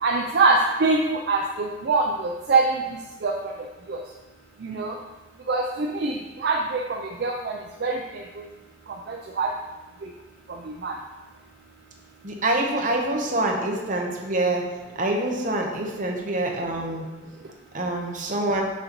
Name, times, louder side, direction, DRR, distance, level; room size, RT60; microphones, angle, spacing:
voice 1, 0.0-2.8 3.2-3.3 3.9-4.0 4.6-4.9 5.5-7.5 7.8-8.0 9.1-9.5 10.8-10.9, right 3 dB, 60° right, 0 dB, 0.4 m, -23 dB
voice 2, 12.2-14.6 15.0-17.0 17.7-18.6, right 1 dB, 45° right, 0 dB, 0.8 m, -25 dB
6.2 x 5.1 x 3.0 m, 1.2 s
head